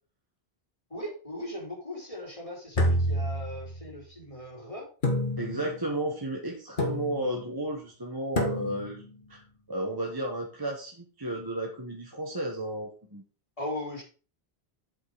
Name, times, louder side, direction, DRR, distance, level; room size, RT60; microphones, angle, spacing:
voice 1, 0.9-4.9 13.6-14.0, left 1 dB, 30° left, -3 dB, 3.8 m, -38 dB
sound 1, 2.7-4.0 5.0-5.8 6.8-7.4 8.4-9.0, left 1 dB, 50° left, 1.7 m, -28 dB
voice 2, 5.4-9.0 9.3-9.4 9.7-13.2, right 1 dB, 20° right, 0 dB, 1.3 m, -33 dB
7.7 x 5.8 x 4.9 m, 0.36 s
omnidirectional pair, 1.1 m